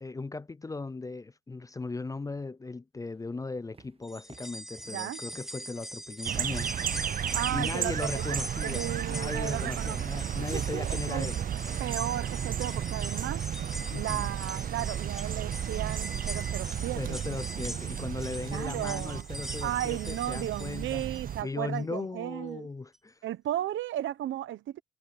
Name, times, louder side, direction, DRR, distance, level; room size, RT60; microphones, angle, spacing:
voice 1, 0.0-6.7 7.5-11.4 13.9-14.3 17.0-21.1 21.4-23.2, left 3 dB, 15° left, 0.5 m, -37 dB
sound 1, 3.1-7.6 8.9-9.0 9.4-15.0, right 5 dB, 30° right, 1.4 m, -54 dB
sound 2, 4.0-21.4 21.8-21.9 22.9-23.0, equal, ahead, 2.8 m, -42 dB
voice 2, 4.9-5.2 7.3-10.0 10.5-11.3 11.8-13.4 13.9-17.2 18.5-19.2 19.6-22.7 23.2-24.8, right 12 dB, 75° right, 1.1 m, -35 dB
sound 3, 6.2-21.4, right 9 dB, 45° right, 0.6 m, -33 dB
cardioid pair, 90°, 20 cm